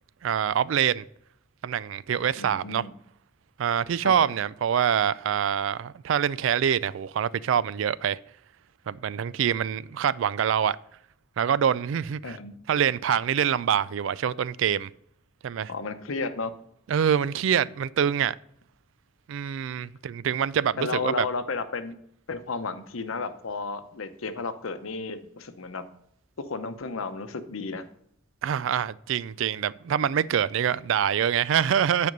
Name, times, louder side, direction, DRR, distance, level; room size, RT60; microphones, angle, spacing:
voice 1, 0.2-1.0 1.6-2.8 3.6-8.2 8.9-10.8 11.4-12.4 12.7-14.9 15.4-15.7 16.9-18.4 19.3-21.3 28.4-32.1, right 8 dB, 65° right, 0.3 m, -25 dB
voice 2, 2.4-2.9 4.0-4.3 12.2-12.5 15.7-16.5 20.8-22.0 22.3-25.8 26.4-27.9, left 4 dB, 80° left, 0.8 m, -33 dB
9.4 x 5.2 x 5.3 m
head